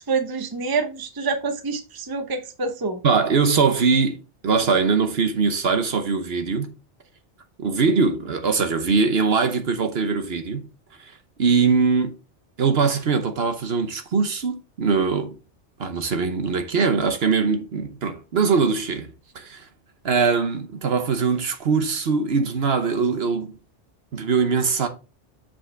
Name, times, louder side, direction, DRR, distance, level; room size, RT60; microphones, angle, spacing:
voice 1, 0.1-3.0, right 4 dB, 20° right, 0.7 m, -26 dB
voice 2, 3.0-6.7 7.6-10.7 11.4-12.1 12.6-15.3 15.8-19.6 20.0-23.5 24.1-24.9, right 5 dB, 60° right, 1.1 m, -22 dB
7.4 x 5.4 x 3.3 m
omnidirectional pair, 1.2 m